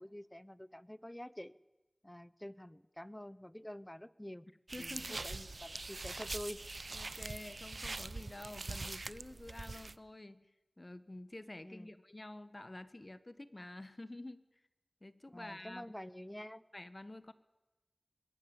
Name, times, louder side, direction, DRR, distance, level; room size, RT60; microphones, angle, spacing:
voice 1, 0.0-1.5 2.0-4.5 4.8-6.6 11.6-11.9 15.3-16.6, left 1 dB, 15° left, 18 dB, 0.8 m, -48 dB
voice 2, 4.7-5.3 5.9-6.0 6.9-10.5 10.8-14.4 15.0-16.0 16.7-17.3, left 2 dB, 40° left, 13 dB, 1.5 m, -49 dB
sound 1, 4.7-10.0, right 3 dB, 70° right, 0.8 m, -43 dB
26.5 x 21.5 x 7.3 m, 1.1 s
wide cardioid pair, 55°, 0 cm